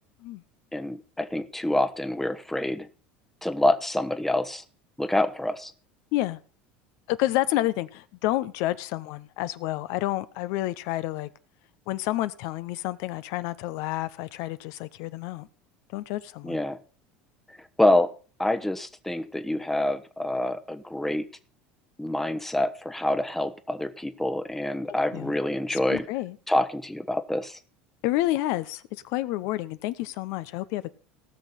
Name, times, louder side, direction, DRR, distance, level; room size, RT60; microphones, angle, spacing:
voice 1, 0.7-2.9 3.4-4.6 5.0-5.7 16.4-16.8 17.8-18.1 18.4-21.2 22.0-26.0 26.5-27.6, left 1 dB, 5° left, 0.9 m, -26 dB
voice 2, 7.1-11.3 11.9-15.5 15.9-16.6 24.9-25.3 25.7-26.4 28.0-30.9, left 16 dB, 65° left, 0.7 m, -29 dB
18.5 x 6.3 x 4.2 m
hypercardioid pair, 85°, 5 cm